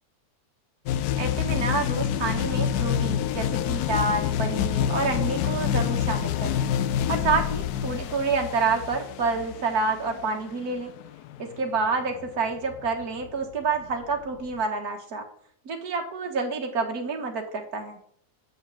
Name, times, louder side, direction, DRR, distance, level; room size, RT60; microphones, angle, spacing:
sound 1, 0.9-14.6, left 9 dB, 80° left, 1.1 m, -28 dB
voice 1, 1.2-6.6 7.1-10.9 11.4-15.2 15.7-18.0, right 4 dB, 70° right, 3 dB, 1.9 m, -28 dB
7.8 x 5.3 x 7.5 m, 0.63 s
omnidirectional pair, 1.7 m